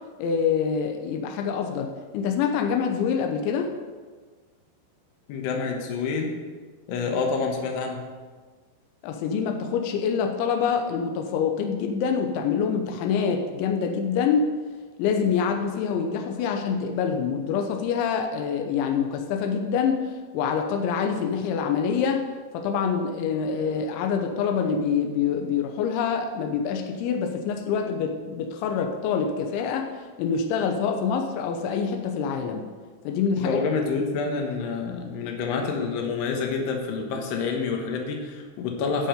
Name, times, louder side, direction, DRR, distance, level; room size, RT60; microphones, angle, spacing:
voice 1, 0.2-3.7 9.0-14.5 15.0-22.3 22.5-29.9 30.2-32.7 33.0-33.6, left 6 dB, 90° left, 4 dB, 3.2 m, -26 dB
voice 2, 5.3-6.3 6.9-8.0 33.3-39.1, left 4 dB, 75° left, 2 dB, 3.2 m, -28 dB
16.5 x 5.6 x 5.1 m, 1.4 s
omnidirectional pair, 5.2 m